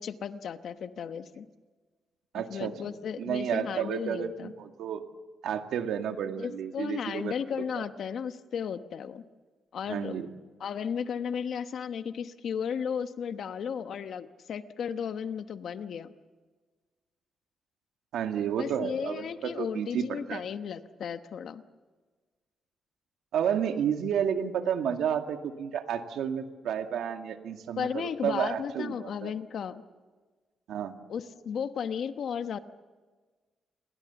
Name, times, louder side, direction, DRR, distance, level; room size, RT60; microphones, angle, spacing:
voice 1, 0.0-1.5 2.3-4.5 6.4-9.2 9.7-10.2 10.6-16.1 18.6-21.6 27.8-29.8 31.1-32.6, left 7 dB, 55° left, 10 dB, 1.0 m, -34 dB
voice 2, 2.3-2.7 3.2-5.0 5.4-7.3 7.8-7.9 9.9-10.3 18.1-20.4 23.3-29.3 30.7-30.9, right 8 dB, 90° right, 6 dB, 2.0 m, -31 dB
29.0 x 22.0 x 7.1 m, 1.4 s
wide cardioid pair, 170°, 0 cm